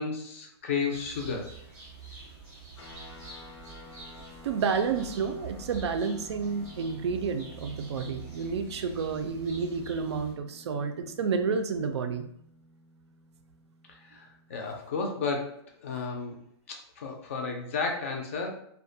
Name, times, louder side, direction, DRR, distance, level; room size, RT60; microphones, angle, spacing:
voice 1, 0.0-1.5 14.1-16.4 16.7-18.5, left 4 dB, 30° left, 2 dB, 0.3 m, -33 dB
sound 1, 0.9-10.3, right 5 dB, 15° right, 0.6 m, -47 dB
sound 2, 2.8-14.5, left 3 dB, 90° left, 0.6 m, -52 dB
voice 2, 4.4-12.3, right 5 dB, 75° right, 7 dB, 0.4 m, -30 dB
2.3 x 2.1 x 2.6 m, 0.68 s
hypercardioid pair, 175°, 14 cm